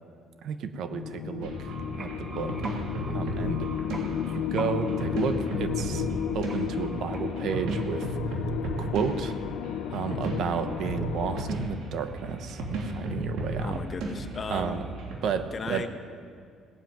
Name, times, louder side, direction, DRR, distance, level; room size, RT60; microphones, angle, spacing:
voice 1, 0.4-2.6 3.1-3.7 4.3-6.1 6.3-8.2 8.8-9.4 9.9-13.8 14.5-14.9 15.2-15.9, right 7 dB, 70° right, 9 dB, 1.1 m, -32 dB
sound 1, 0.9-11.5, left 11 dB, 80° left, 0.4 m, -33 dB
sound 2, 1.4-8.2, right 2 dB, 30° right, 2.1 m, -44 dB
sound 3, 1.4-15.1, right 1 dB, 90° right, 3.1 m, -34 dB
voice 2, 13.6-14.9 15.5-15.9, left 5 dB, 35° left, 8 dB, 1.1 m, -35 dB
18.0 x 7.6 x 9.1 m, 2.3 s
cardioid pair, 110°, 0 cm